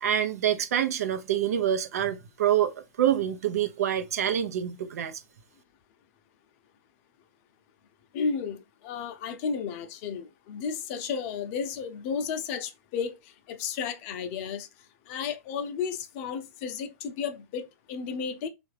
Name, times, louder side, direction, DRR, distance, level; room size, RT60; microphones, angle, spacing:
voice 1, 0.0-5.1, right 10 dB, 70° right, 0.6 m, -26 dB
voice 2, 8.1-13.2 13.5-14.7 15.1-18.5, left 6 dB, 45° left, 0.6 m, -33 dB
3.4 x 2.5 x 3.2 m
hypercardioid pair, 120°, 9 cm